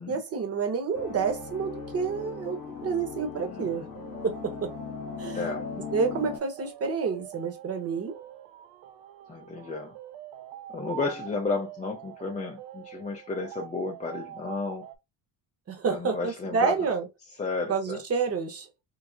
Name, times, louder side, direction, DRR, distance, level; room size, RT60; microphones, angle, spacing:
voice 1, 0.1-3.8 4.2-4.7 5.2-5.5 5.9-8.1 15.7-17.1 17.7-18.7, right 5 dB, 35° right, 0.9 m, -29 dB
sound 1, 0.9-6.4, left 7 dB, 45° left, 1.0 m, -39 dB
sound 2, 1.0-14.9, right 11 dB, 75° right, 0.7 m, -45 dB
voice 2, 5.3-5.7 9.3-9.9 10.7-14.8 15.9-16.8 17.4-18.0, left 3 dB, 20° left, 0.4 m, -32 dB
4.7 x 2.0 x 2.5 m
cardioid pair, 125°, 43 cm